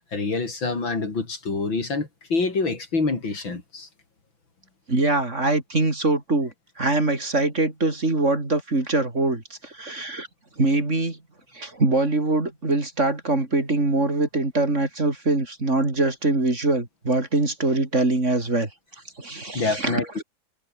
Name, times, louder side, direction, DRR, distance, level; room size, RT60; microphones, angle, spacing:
voice 1, 0.1-3.9 19.6-20.2, left 3 dB, 85° left, 5.4 m, -26 dB
voice 2, 4.9-10.3 10.6-11.2 11.5-18.7 19.2-20.0, right 2 dB, 35° right, 4.7 m, -23 dB
omnidirectional pair, 2.1 m